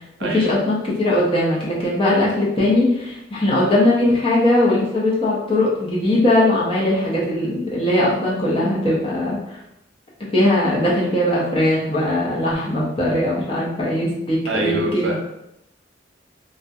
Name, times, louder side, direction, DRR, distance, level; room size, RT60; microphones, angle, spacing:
voice 1, 0.2-9.4 10.3-15.2, left 1 dB, 30° left, -6 dB, 0.6 m, -19 dB
voice 2, 14.5-15.2, right 2 dB, 80° right, 0 dB, 0.5 m, -25 dB
2.6 x 2.1 x 2.3 m, 0.85 s
head